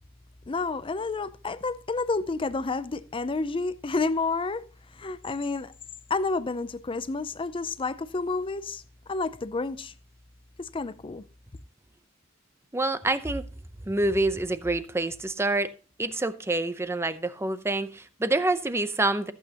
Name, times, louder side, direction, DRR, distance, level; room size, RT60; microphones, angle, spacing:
voice 1, 0.5-4.6 5.0-5.7 6.1-8.8 9.1-9.9 10.6-11.2, left 3 dB, 25° left, 0.5 m, -30 dB
voice 2, 12.7-13.5 13.9-15.7 16.0-19.3, right 2 dB, 15° right, 0.6 m, -27 dB
14.5 x 8.1 x 2.9 m
head